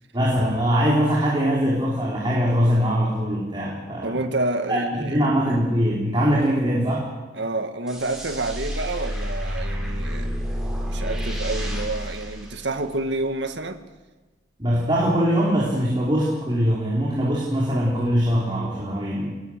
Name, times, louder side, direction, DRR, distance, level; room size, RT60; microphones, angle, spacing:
voice 1, 0.1-4.2 4.7-7.1 14.6-19.4, equal, 25° right, -5 dB, 4.5 m, -22 dB
voice 2, 4.0-5.2 7.3-10.3 10.9-13.8, right 2 dB, 70° right, 7 dB, 1.8 m, -28 dB
sound 1, 7.9-13.2, equal, 5° right, 6.1 m, -29 dB
23.0 x 20.5 x 6.7 m, 1.2 s
head